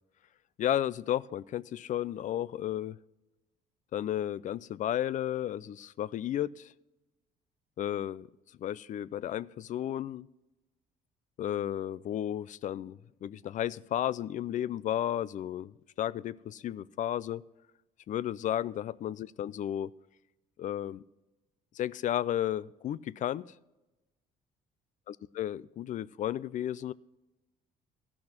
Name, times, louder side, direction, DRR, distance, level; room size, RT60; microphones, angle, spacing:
voice 1, 0.6-3.0 3.9-6.7 7.8-8.3 8.6-10.3 11.4-17.4 18.1-19.9 20.6-21.0 21.7-23.4 25.1-26.9, left 11 dB, 50° left, 20 dB, 0.4 m, -33 dB
14.5 x 6.1 x 5.8 m, 1.0 s
cardioid pair, 110°, 17 cm